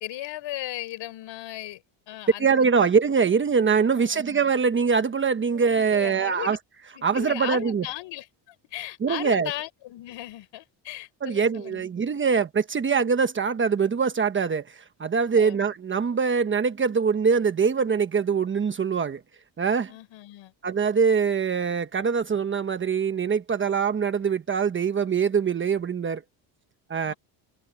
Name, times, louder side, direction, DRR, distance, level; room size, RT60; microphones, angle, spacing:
voice 1, 0.0-2.6 3.9-4.3 5.5-6.6 6.9-11.9 15.2-15.6 19.9-20.5 27.0-27.2, left 15 dB, 65° left, 4.7 m, -37 dB
voice 2, 2.4-6.6 7.0-7.8 9.0-9.5 11.2-19.2 19.6-19.9 20.6-26.2 26.9-27.1, right 6 dB, 25° right, 1.2 m, -23 dB
cardioid pair, 150°, 48 cm